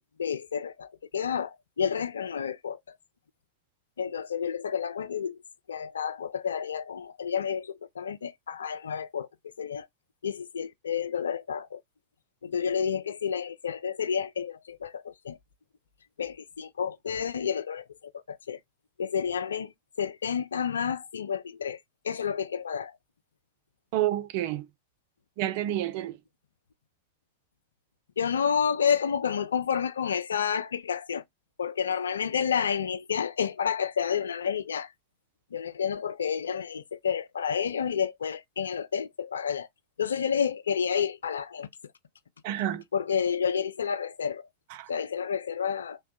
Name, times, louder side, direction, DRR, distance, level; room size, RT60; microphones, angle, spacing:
voice 1, 0.2-3.0 4.0-5.4 5.7-9.3 9.6-9.9 10.2-11.8 12.4-15.4 16.2-18.6 19.0-19.7 20.0-21.8 22.0-23.0 28.2-31.2 31.6-34.9 35.5-39.7 40.0-41.7 42.9-44.5 44.9-46.0, left 7 dB, 70° left, 0.3 m, -30 dB
voice 2, 23.9-24.7 25.4-26.2 42.4-42.8 44.7-44.9, right 13 dB, 50° right, 0.4 m, -29 dB
3.3 x 2.1 x 2.6 m
figure-of-eight pair, 90°, 0 cm